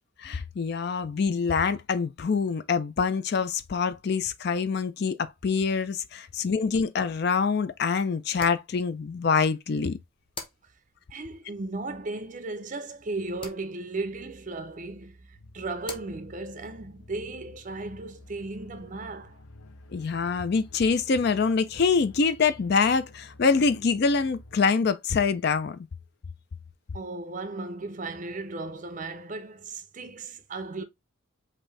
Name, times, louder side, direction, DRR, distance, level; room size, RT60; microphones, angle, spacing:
voice 1, 0.2-10.0 19.9-25.9, left 5 dB, 50° left, 0.4 m, -25 dB
sound 1, 6.3-19.1, left 2 dB, 25° left, 0.9 m, -50 dB
voice 2, 11.1-19.4 26.9-30.8, right 3 dB, 35° right, 0.5 m, -36 dB
sound 2, 15.3-24.6, left 1 dB, 80° left, 0.8 m, -50 dB
5.3 x 2.6 x 3.1 m
head